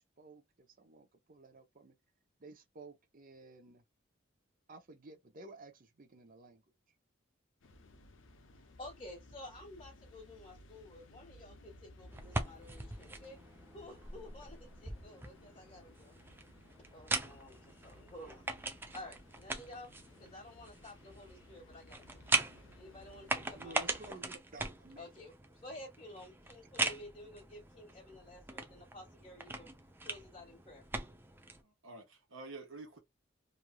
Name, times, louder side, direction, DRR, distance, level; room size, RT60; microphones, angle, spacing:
voice 1, 0.0-1.9 2.4-3.8 4.7-6.6 23.5-25.2, right 2 dB, 45° right, 0.7 m, -54 dB
sound 1, 7.6-24.1, left 2 dB, 70° left, 0.7 m, -59 dB
voice 2, 8.5-13.4 13.7-16.1 16.9-19.9 20.2-22.2 22.7-24.0 25.0-29.7 30.0-30.9, left 1 dB, 25° left, 1.3 m, -52 dB
sound 2, 12.1-31.6, right 3 dB, 10° right, 0.4 m, -41 dB
voice 3, 31.6-33.0, right 3 dB, 85° right, 1.1 m, -49 dB
3.1 x 2.5 x 2.2 m
head